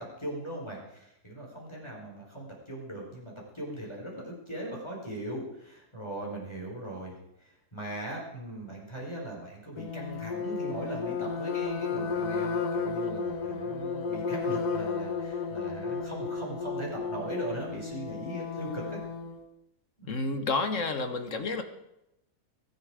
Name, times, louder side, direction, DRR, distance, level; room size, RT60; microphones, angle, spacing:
voice 1, 0.0-19.0 20.0-20.1, right 1 dB, 15° left, -2 dB, 5.2 m, -39 dB
sound 1, 9.8-19.4, left 5 dB, 85° left, 1.8 m, -33 dB
voice 2, 20.1-21.6, left 3 dB, 55° left, 8 dB, 1.7 m, -30 dB
22.5 x 11.0 x 5.0 m, 0.84 s
omnidirectional pair, 1.6 m